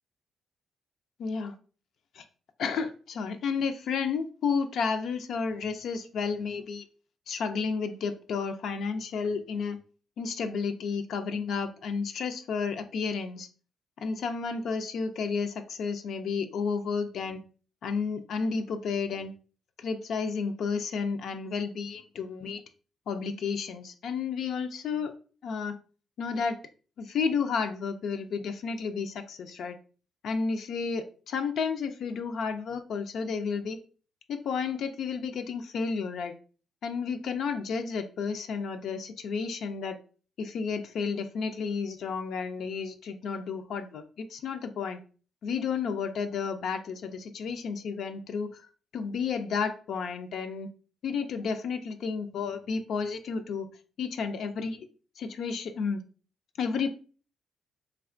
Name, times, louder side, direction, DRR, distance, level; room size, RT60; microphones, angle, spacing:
voice 1, 1.2-1.5 2.2-2.3 2.6-6.8 7.3-9.8 10.2-13.5 14.0-17.4 17.8-19.3 19.8-22.6 23.1-25.1 25.4-25.8 26.2-26.6 27.0-29.8 30.2-33.8 34.3-36.3 36.8-40.0 40.4-45.0 45.4-48.6 48.9-50.7 51.0-53.7 54.0-54.9 55.2-56.0 56.6-56.9, left 5 dB, 70° left, 7 dB, 0.3 m, -32 dB
3.2 x 2.8 x 2.4 m, 0.38 s
cardioid pair, 90°, 0 cm